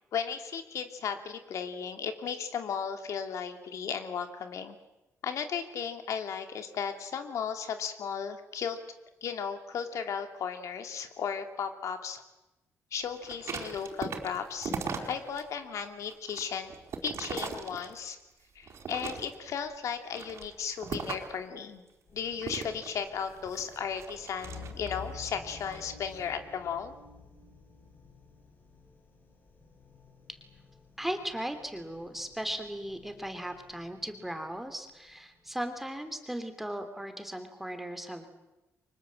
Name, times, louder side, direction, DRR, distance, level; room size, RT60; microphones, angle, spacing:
voice 1, 0.1-4.8 5.2-8.8 9.2-12.2 12.9-14.8 15.1-16.7 17.0-18.2 18.5-21.8 22.1-26.9, left 7 dB, 70° left, 7 dB, 2.7 m, -35 dB
sound 1, 13.2-15.4 15.8-18.2 18.7-19.5 20.0-21.4 22.4-25.1 25.5-25.9, right 5 dB, 55° right, 4.7 m, -39 dB
sound 2, 22.1-35.6, left 4 dB, 35° left, 5.2 m, -51 dB
voice 2, 31.0-38.3, right 1 dB, 5° right, 7 dB, 3.0 m, -37 dB
30.0 x 25.0 x 7.7 m, 1.0 s
wide cardioid pair, 165°, 5 cm